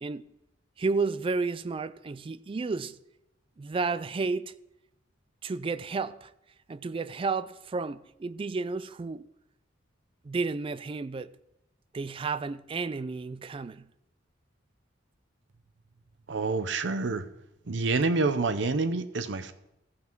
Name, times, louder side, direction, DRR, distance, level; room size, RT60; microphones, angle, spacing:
voice 1, 0.8-3.0 3.6-4.5 5.4-6.3 6.7-9.2 10.2-11.3 11.9-13.9, right 4 dB, 30° right, 0.3 m, -32 dB
voice 2, 16.3-17.3 17.7-19.5, right 3 dB, 70° right, 0.7 m, -27 dB
15.0 x 5.8 x 4.6 m
head